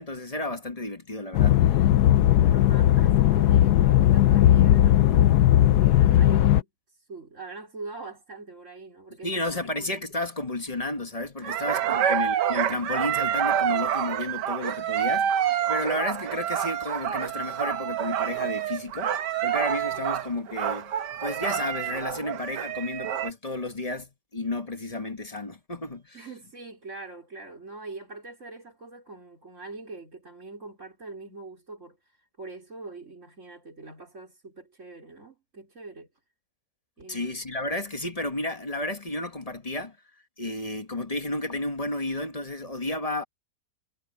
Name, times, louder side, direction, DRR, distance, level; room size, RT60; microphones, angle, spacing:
voice 1, 0.0-1.9 9.2-20.9 21.2-26.2 37.1-40.0 40.4-43.2, left 2 dB, 25° left, 1.4 m, -32 dB
sound 1, 1.3-6.6, left 12 dB, 75° left, 1.2 m, -18 dB
voice 2, 2.4-6.7 7.1-9.4 9.8-9.9 11.4-12.0 26.1-32.0 32.4-36.1 37.0-37.4, right 3 dB, 45° right, 4.9 m, -43 dB
sound 2, 11.4-23.3, right 10 dB, 90° right, 1.6 m, -27 dB
omnidirectional pair, 1.8 m